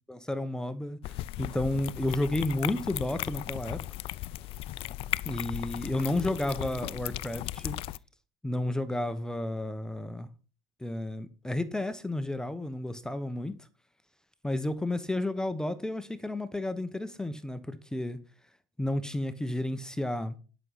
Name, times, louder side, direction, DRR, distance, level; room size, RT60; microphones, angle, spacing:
voice 1, 0.1-3.8 5.2-7.8 8.4-10.3 10.8-13.5 14.4-18.2 18.8-20.3, left 1 dB, 5° left, 0.9 m, -32 dB
sound 1, 1.0-8.0, left 16 dB, 50° left, 0.5 m, -36 dB
11.0 x 6.3 x 5.6 m
supercardioid pair, 100°, 12 cm